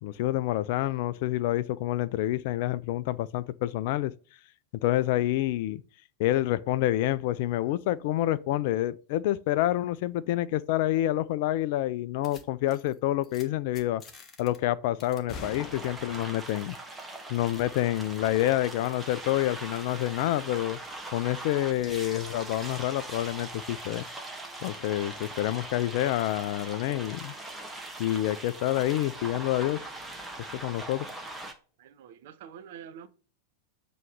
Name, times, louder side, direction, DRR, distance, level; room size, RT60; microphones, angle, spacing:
voice 1, 0.0-4.1 4.8-5.8 6.2-14.0 14.4-16.8 17.3-20.8 21.1-24.0 24.6-27.3 28.0-29.9 30.6-31.1, left 14 dB, 50° left, 0.4 m, -28 dB
sound 1, 12.2-12.4 12.7-12.9 13.2-13.4 13.7-14.6 15.0-16.3, left 4 dB, 25° left, 1.3 m, -44 dB
sound 2, 15.4-31.5, right 2 dB, 10° right, 1.2 m, -41 dB
voice 2, 31.8-33.1, right 8 dB, 55° right, 0.6 m, -46 dB
7.4 x 3.1 x 5.3 m
figure-of-eight pair, 90°, 0 cm